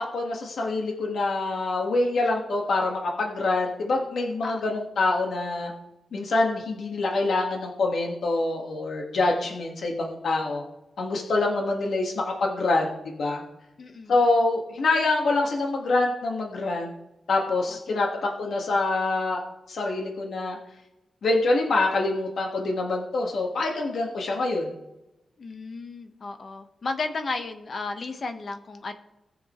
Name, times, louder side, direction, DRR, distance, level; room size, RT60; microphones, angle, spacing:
voice 1, 0.1-5.7 6.1-10.6 11.0-13.4 14.1-16.9 17.3-19.4 19.7-20.6 21.2-24.7, left 2 dB, 70° left, 0 dB, 1.6 m, -25 dB
voice 2, 4.4-4.7 13.8-14.1 17.9-18.3 25.4-28.9, left 3 dB, 50° left, 7 dB, 1.1 m, -34 dB
18.5 x 7.1 x 3.1 m, 0.93 s
cardioid pair, 95°, 0 cm